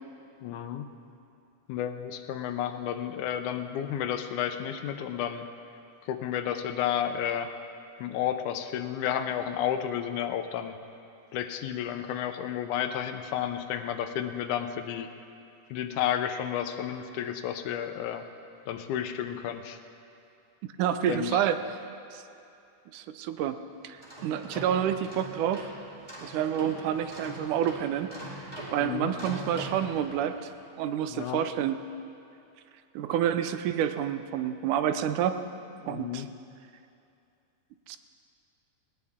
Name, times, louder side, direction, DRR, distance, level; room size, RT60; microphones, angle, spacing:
voice 1, 0.4-0.9 1.7-5.5 6.1-7.5 8.0-10.7 11.3-15.1 15.7-18.2 18.7-19.8 21.1-21.4 28.8-29.1 31.1-31.4 35.8-36.3, left 10 dB, 80° left, 8 dB, 2.1 m, -31 dB
voice 2, 20.8-21.8 22.1-22.2 22.9-23.6 23.8-24.0 24.2-25.7 26.2-28.1 28.7-30.5 30.8-31.8 33.0-35.4 35.9-36.3 37.9-38.0, right 10 dB, 80° right, 9 dB, 2.1 m, -28 dB
sound 1, 23.9-30.5, right 1 dB, 15° right, 1.9 m, -42 dB
19.5 x 18.5 x 3.6 m, 2.6 s
omnidirectional pair, 3.6 m